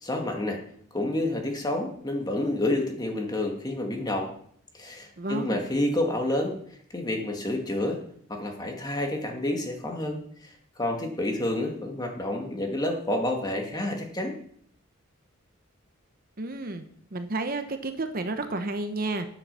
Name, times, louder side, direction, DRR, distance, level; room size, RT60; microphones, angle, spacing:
voice 1, 0.0-0.6 0.9-4.3 4.7-6.6 6.9-8.0 8.3-14.3, left 1 dB, 20° left, 2 dB, 1.9 m, -29 dB
voice 2, 5.2-5.6 16.4-16.8 17.1-19.3, right 2 dB, 45° right, 8 dB, 0.9 m, -31 dB
9.9 x 7.6 x 6.8 m, 0.62 s
head